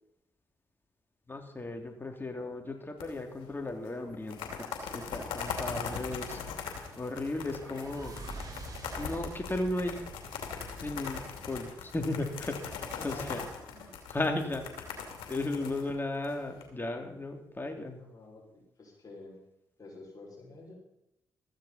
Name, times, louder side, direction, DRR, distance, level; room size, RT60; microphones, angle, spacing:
voice 1, 1.3-6.4 7.0-8.1 9.0-10.0 10.8-13.4 14.1-14.6 15.3-18.0, left 2 dB, 25° left, 4 dB, 2.9 m, -35 dB
sound 1, 3.0-3.4 3.7-3.8 4.1-16.6, left 6 dB, 80° left, 2.7 m, -40 dB
sound 2, 6.3-11.2, right 2 dB, 45° right, 3.7 m, -47 dB
voice 2, 12.8-13.9 14.9-15.0 15.5-15.6 18.0-19.4 19.8-20.7, left 2 dB, 45° left, -3 dB, 6.0 m, -49 dB
15.0 x 14.0 x 4.3 m, 0.84 s
hypercardioid pair, 45°, 9 cm